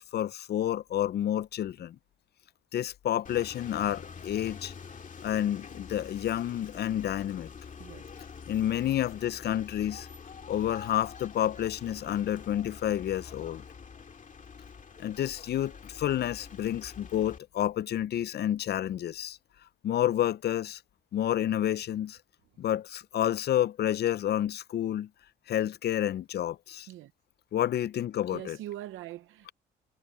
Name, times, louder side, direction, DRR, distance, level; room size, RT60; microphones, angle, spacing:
voice 1, 0.0-2.0 2.7-4.7 5.2-7.5 8.5-10.1 10.5-13.6 15.0-19.4 19.8-20.8 21.1-22.2 22.6-25.1 25.5-26.9 27.5-28.6, left 11 dB, 55° left, 0.5 m, -29 dB
sound 1, 3.2-17.4, left 6 dB, 40° left, 2.2 m, -46 dB
voice 2, 7.8-8.1 26.9-27.1 28.3-29.5, right 13 dB, 85° right, 0.8 m, -42 dB
cardioid pair, 90°, 20 cm